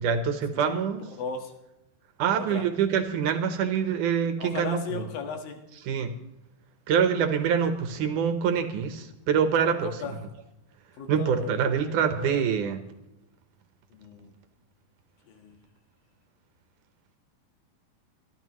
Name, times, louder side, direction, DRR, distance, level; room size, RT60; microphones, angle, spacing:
voice 1, 0.0-1.0 2.2-5.0 5.9-6.1 6.9-9.9 11.1-12.8, right 7 dB, 70° right, 8 dB, 2.3 m, -25 dB
voice 2, 1.2-1.5 2.3-2.7 4.4-5.6 9.6-10.2 11.0-12.4 13.9-14.3 15.2-15.6, left 5 dB, 80° left, 4 dB, 3.4 m, -37 dB
25.0 x 11.5 x 3.1 m, 0.91 s
omnidirectional pair, 4.1 m